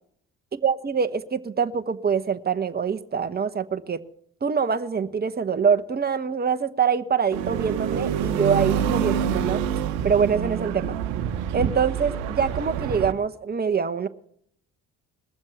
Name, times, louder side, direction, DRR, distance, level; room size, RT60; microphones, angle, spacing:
voice 1, 0.6-4.0 4.4-9.6 10.0-11.0 11.5-14.1, right 6 dB, 25° right, 10 dB, 1.0 m, -24 dB
sound 1, 7.3-13.1, right 8 dB, 85° right, 0.9 m, -27 dB
20.0 x 7.3 x 8.1 m, 0.67 s
hypercardioid pair, 55°, 39 cm